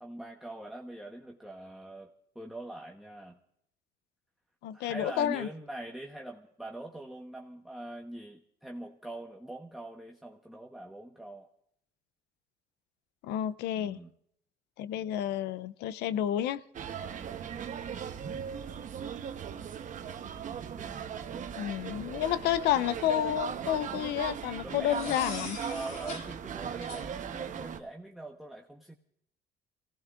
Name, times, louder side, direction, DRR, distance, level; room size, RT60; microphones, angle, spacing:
voice 1, 0.0-3.4 4.7-11.5 13.7-14.1 17.0-17.4 20.8-21.4 24.6-28.9, right 1 dB, ahead, 0 dB, 1.1 m, -43 dB
voice 2, 4.6-5.5 13.2-14.0 14.8-16.6 21.6-25.6, left 11 dB, 85° left, 16 dB, 0.6 m, -30 dB
sound 1, 16.7-27.8, right 8 dB, 50° right, 1.0 m, -38 dB
sound 2, 22.6-23.3 24.9-26.3 26.8-27.0, left 3 dB, 55° left, 3.6 m, -43 dB
29.5 x 17.0 x 2.5 m, 0.71 s
cardioid pair, 110°, 17 cm